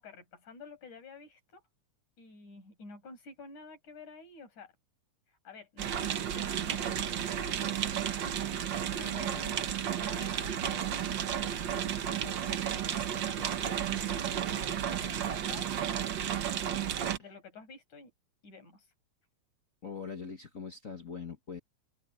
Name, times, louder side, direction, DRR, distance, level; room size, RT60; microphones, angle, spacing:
voice 1, 0.0-1.6 2.2-4.7 5.3-8.4 9.0-15.8 16.5-16.9 17.1-18.1 18.4-18.9, left 4 dB, 75° left, 8.2 m, -51 dB
sound 1, 5.8-17.2, right 9 dB, 65° right, 1.2 m, -33 dB
voice 2, 19.8-21.6, left 5 dB, 45° left, 1.0 m, -42 dB
open air
omnidirectional pair, 3.5 m